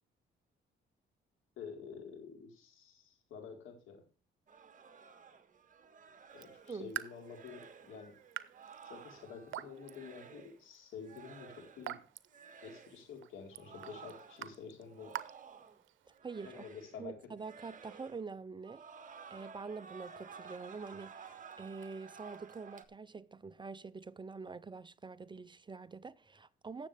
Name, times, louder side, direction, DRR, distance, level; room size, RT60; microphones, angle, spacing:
voice 1, 1.6-4.0 6.3-8.1 8.8-12.0 12.6-15.1 16.4-17.1, left 6 dB, 80° left, 4.0 m, -49 dB
sound 1, 4.5-10.6 11.0-12.0 12.3-13.1 13.5-15.9 16.1-17.1 17.4-18.3 18.6-22.9, right 6 dB, 40° right, 1.6 m, -54 dB
Raindrop / Drip, 6.3-16.2, right 13 dB, 75° right, 0.8 m, -48 dB
voice 2, 16.2-16.6 17.0-18.8 19.3-26.9, right 4 dB, 25° right, 0.5 m, -46 dB
17.0 x 7.5 x 3.4 m
cardioid pair, 90°, 20 cm